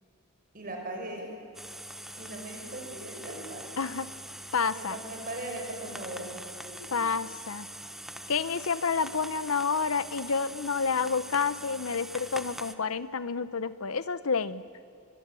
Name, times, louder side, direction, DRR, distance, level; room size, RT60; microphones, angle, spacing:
voice 1, 0.5-1.3 2.2-3.7 4.7-6.3 6.6-7.0, right 2 dB, 40° right, 2 dB, 5.7 m, -39 dB
sound 1, 1.5-12.7, right 1 dB, ahead, 1.0 m, -43 dB
voice 2, 4.5-5.0 6.9-7.7 8.3-14.6, left 5 dB, 75° left, 14 dB, 1.0 m, -29 dB
24.5 x 23.5 x 9.1 m, 2.5 s
head